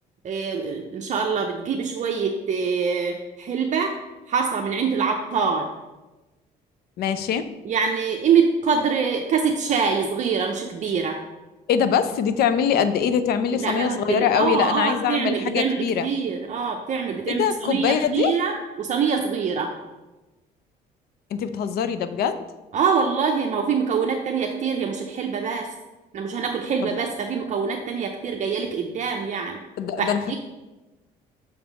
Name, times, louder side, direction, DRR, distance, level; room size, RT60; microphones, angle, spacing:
voice 1, 0.2-3.9 4.3-5.7 7.6-11.2 13.6-19.7 22.7-25.7 26.1-29.6 30.0-30.4, right 6 dB, 45° right, 2 dB, 0.6 m, -24 dB
voice 2, 7.0-7.5 11.7-16.1 17.3-18.3 21.3-22.4 29.8-30.4, left 7 dB, 65° left, 12 dB, 0.5 m, -23 dB
6.4 x 3.5 x 6.0 m, 1.1 s
cardioid pair, 110°, 17 cm